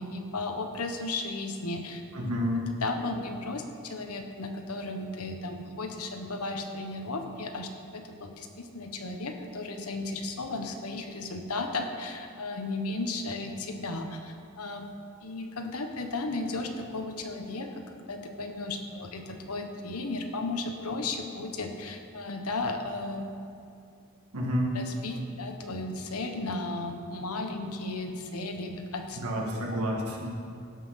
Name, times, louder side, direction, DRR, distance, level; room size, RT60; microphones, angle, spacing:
voice 1, 0.0-2.0 2.8-14.9 15.2-23.2 24.7-29.2 29.5-29.7, left 2 dB, 90° left, 5 dB, 1.1 m, -35 dB
voice 2, 2.1-2.6 24.3-24.8 29.1-30.3, equal, 90° right, -2 dB, 1.7 m, -29 dB
16.5 x 5.8 x 5.7 m, 2.4 s
head